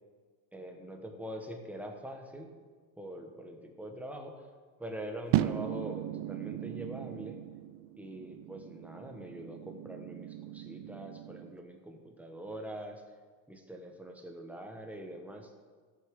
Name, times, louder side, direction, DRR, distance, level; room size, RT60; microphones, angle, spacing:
voice 1, 0.5-2.5 3.0-4.5 4.8-7.4 8.0-13.0 13.5-15.5, right 1 dB, 5° right, 3 dB, 1.2 m, -44 dB
sound 1, 5.3-11.5, right 14 dB, 65° right, 0.6 m, -37 dB
14.0 x 7.4 x 3.7 m, 1.5 s
supercardioid pair, 115°, 49 cm